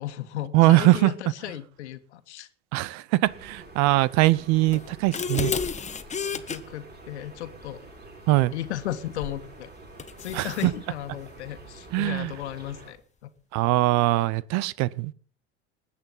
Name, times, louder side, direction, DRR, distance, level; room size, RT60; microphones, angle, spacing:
voice 1, 0.0-2.5 6.3-7.8 8.5-9.7 10.2-13.0 13.2-13.3, left 12 dB, 75° left, 11 dB, 1.6 m, -35 dB
voice 2, 0.5-1.1 2.7-5.5 8.3-8.5 10.3-10.7 11.9-12.3 13.5-15.1, right 18 dB, 55° right, 22 dB, 0.8 m, -21 dB
sound 1, 3.2-12.9, right 2 dB, 30° right, 6.8 m, -47 dB
sound 2, 4.7-6.6 9.2-9.4 10.0-10.7, left 6 dB, 20° left, 1.3 m, -31 dB
20.0 x 8.6 x 5.6 m, 0.43 s
hypercardioid pair, 85°, 34 cm